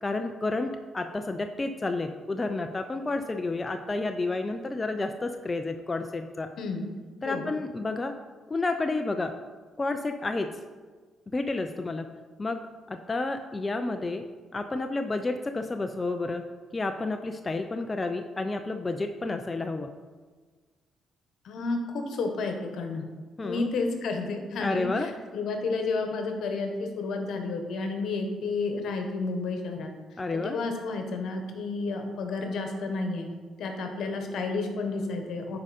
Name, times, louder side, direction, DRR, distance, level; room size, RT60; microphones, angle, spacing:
voice 1, 0.0-6.5 7.2-8.1 8.5-9.3 9.8-10.5 11.3-12.1 12.4-12.6 12.9-14.2 14.5-16.4 16.7-19.9 23.4-23.7 24.6-25.1 30.2-30.6, left 3 dB, 25° left, 6 dB, 0.5 m, -30 dB
voice 2, 21.4-23.1 23.4-29.9 30.3-33.3 33.6-35.6, left 3 dB, 70° left, 4 dB, 1.3 m, -31 dB
10.0 x 4.9 x 4.3 m, 1.4 s
cardioid pair, 90°, 0 cm